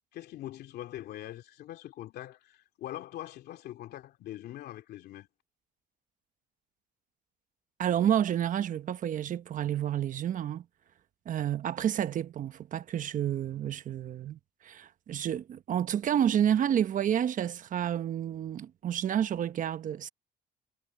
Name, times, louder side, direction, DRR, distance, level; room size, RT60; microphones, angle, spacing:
voice 1, 0.1-5.3, left 13 dB, 75° left, 2.7 m, -43 dB
voice 2, 7.8-10.6 11.3-20.1, right 10 dB, 50° right, 1.1 m, -30 dB
cardioid pair, 110°, 17 cm